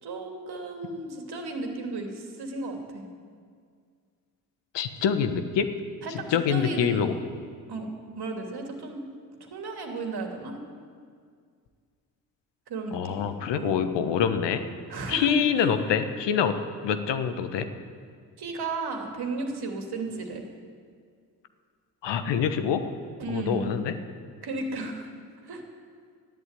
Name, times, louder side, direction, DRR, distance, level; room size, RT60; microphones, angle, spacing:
voice 1, 0.0-3.0 6.0-7.1 7.7-7.9 8.2-9.0 9.4-10.6 12.7-13.3 13.5-13.8 14.9-15.4 18.4-20.4 23.2-23.7 24.4-25.1 25.4-25.6, right 3 dB, 55° right, 3 dB, 2.9 m, -34 dB
voice 2, 4.7-5.7 6.3-7.1 12.9-14.6 15.1-16.5 16.8-17.7 22.0-22.8 23.3-23.9, left 7 dB, 65° left, 9 dB, 1.3 m, -25 dB
13.0 x 11.0 x 9.7 m, 2.1 s
hypercardioid pair, 45°, 46 cm